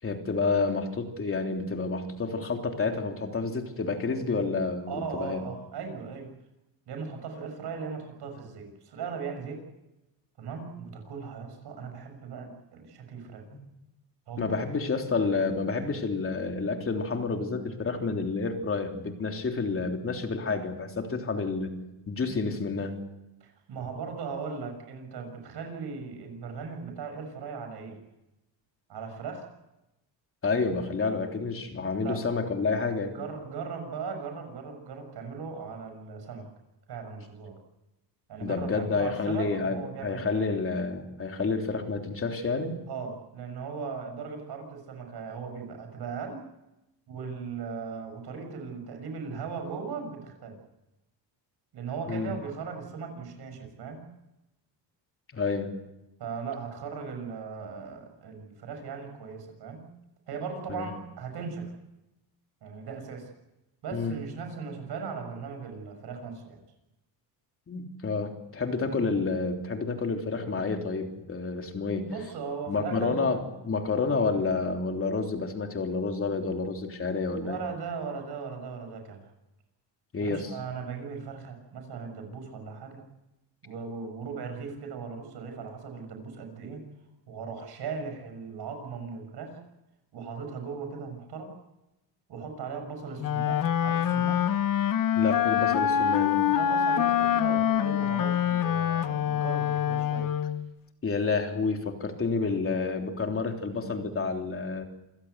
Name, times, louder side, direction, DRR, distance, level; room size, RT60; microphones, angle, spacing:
voice 1, 0.0-5.4 14.4-21.8 22.1-22.9 30.4-33.1 38.4-42.7 52.1-52.3 55.3-55.7 60.7-60.9 63.9-64.2 67.7-72.1 72.7-77.6 80.1-80.5 95.2-96.4 101.0-104.8, left 4 dB, 30° left, 3 dB, 3.4 m, -29 dB
voice 2, 4.9-6.3 6.9-9.6 10.4-13.4 14.3-14.6 23.4-28.0 28.9-29.5 31.9-32.2 33.1-36.5 36.9-37.6 38.3-40.4 42.9-46.5 47.1-50.6 51.7-54.0 56.2-59.9 60.3-61.7 62.6-63.3 63.8-66.6 72.0-73.2 77.4-79.3 80.2-83.0 83.6-86.8 87.3-89.6 90.1-91.5 92.3-94.5 96.5-100.3, right 5 dB, 65° right, 5 dB, 6.6 m, -38 dB
Wind instrument woodwind instrument, 93.2-100.7, left 9 dB, 50° left, 1.1 m, -25 dB
27.5 x 16.5 x 8.1 m, 0.96 s
cardioid pair, 120°, 42 cm